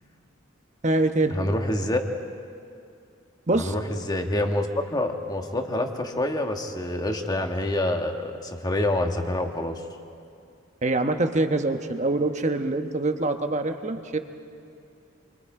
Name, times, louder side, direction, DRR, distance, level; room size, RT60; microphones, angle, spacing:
voice 1, 0.8-1.4 3.5-3.7 10.8-14.2, right 2 dB, 35° right, 6 dB, 1.1 m, -24 dB
voice 2, 1.3-2.0 3.5-9.8, left 1 dB, 20° left, 4 dB, 1.5 m, -27 dB
28.5 x 23.5 x 4.9 m, 2.4 s
head